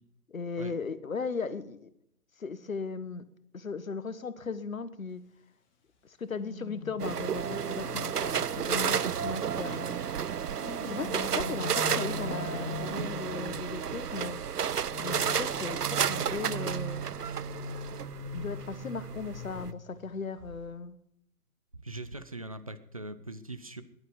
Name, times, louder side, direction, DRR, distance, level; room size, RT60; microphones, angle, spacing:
voice 1, 0.3-1.9 2.4-3.2 3.5-5.2 6.0-10.0 10.8-14.4 15.0-17.0 18.3-21.0, left 4 dB, 60° left, 14 dB, 1.4 m, -37 dB
sound 1, 6.4-10.0 10.6-13.8 14.9-20.1 20.4-20.7, left 1 dB, 30° left, 2.9 m, -41 dB
sound 2, 7.0-19.7, right 8 dB, 80° right, 0.6 m, -32 dB
voice 2, 13.3-13.7 14.0-14.3 21.8-23.8, right 2 dB, 25° right, 12 dB, 0.6 m, -42 dB
20.0 x 11.5 x 5.4 m, 0.78 s
figure-of-eight pair, 140°, 46 cm